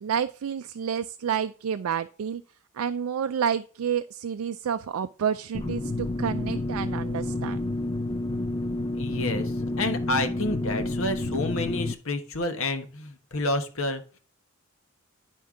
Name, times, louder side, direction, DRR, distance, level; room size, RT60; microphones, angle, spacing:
voice 1, 0.0-2.4 2.7-7.6, right 8 dB, 85° right, 9 dB, 0.4 m, -29 dB
sound 1, 5.5-11.9, left 2 dB, 25° left, 0.5 m, -29 dB
voice 2, 9.0-9.5 9.8-14.0, left 2 dB, 70° left, 6 dB, 1.2 m, -29 dB
11.0 x 4.5 x 3.7 m, 0.39 s
head